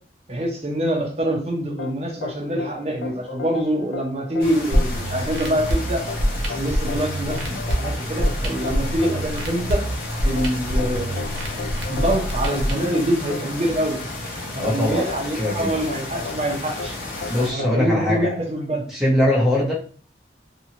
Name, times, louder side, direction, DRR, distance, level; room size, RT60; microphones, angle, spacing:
voice 1, 0.3-6.0 6.5-7.4 7.8-9.8 10.2-11.6 11.9-14.0 14.5-17.0 17.4-19.0, right 1 dB, 35° right, -1 dB, 0.7 m, -25 dB
sound 1, 1.8-18.7, left 5 dB, 75° left, 0.3 m, -36 dB
sound 2, 4.4-17.5, left 2 dB, 50° left, 0.7 m, -33 dB
sound 3, 4.7-12.7, equal, 85° right, 0.8 m, -25 dB
voice 2, 14.6-15.1 15.4-15.8 17.3-18.3 18.9-19.7, left 1 dB, ahead, -5 dB, 0.8 m, -21 dB
2.7 x 2.3 x 2.8 m, 0.42 s
head